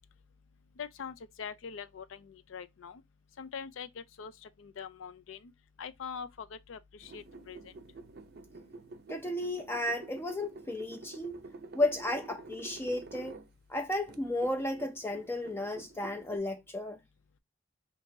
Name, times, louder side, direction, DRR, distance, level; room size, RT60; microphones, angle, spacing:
voice 1, 0.8-3.0 3.4-5.4 5.8-7.6, left 6 dB, 75° left, 0.4 m, -43 dB
sound 1, 7.0-13.5 13.9-16.4, right 3 dB, 55° right, 0.5 m, -48 dB
voice 2, 9.1-11.4 11.7-13.4 13.7-17.0, left 1 dB, 10° left, 0.4 m, -33 dB
2.8 x 2.6 x 4.3 m
head